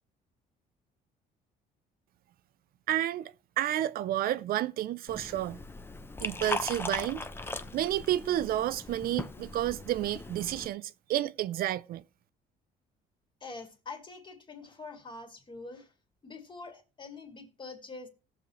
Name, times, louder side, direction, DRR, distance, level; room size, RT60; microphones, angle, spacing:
voice 1, 2.9-5.6 6.2-7.2 7.7-12.0, right 13 dB, 60° right, 0.4 m, -30 dB
Liquid, 5.1-10.7, left 2 dB, 15° left, 0.6 m, -39 dB
voice 2, 13.4-15.9 16.2-18.1, left 3 dB, 30° left, 2.2 m, -45 dB
18.0 x 7.1 x 3.1 m
cardioid pair, 110°, 17 cm